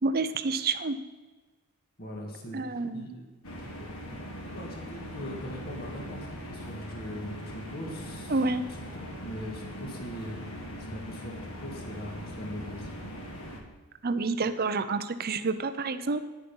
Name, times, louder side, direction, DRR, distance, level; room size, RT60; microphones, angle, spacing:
voice 1, 0.0-1.0 2.5-3.1 8.3-8.6 14.0-16.2, right 3 dB, 45° right, 11 dB, 0.6 m, -28 dB
voice 2, 2.0-3.3 3.6-3.9 4.5-8.4 8.7-12.9, equal, 45° left, 0 dB, 1.9 m, -41 dB
sound 1, 3.4-13.6, equal, 65° left, 1.8 m, -41 dB
10.0 x 8.0 x 5.5 m, 1.3 s
head